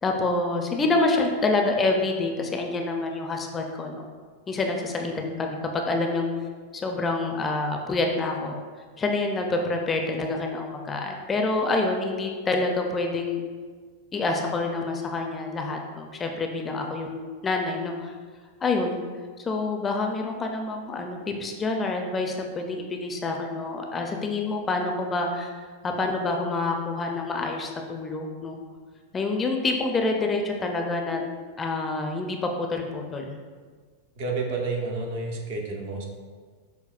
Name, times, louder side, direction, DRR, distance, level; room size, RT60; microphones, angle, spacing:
voice 1, 0.0-4.1 4.5-6.3 6.7-8.6 9.0-13.4 14.1-18.1 18.6-19.0 19.4-25.5 25.8-28.6 29.1-31.2 31.6-33.3, left 3 dB, 20° left, 3 dB, 0.4 m, -27 dB
voice 2, 34.2-36.0, right 3 dB, 65° right, 1 dB, 0.7 m, -30 dB
5.7 x 2.1 x 2.4 m, 1.5 s
hypercardioid pair, 115°, 0 cm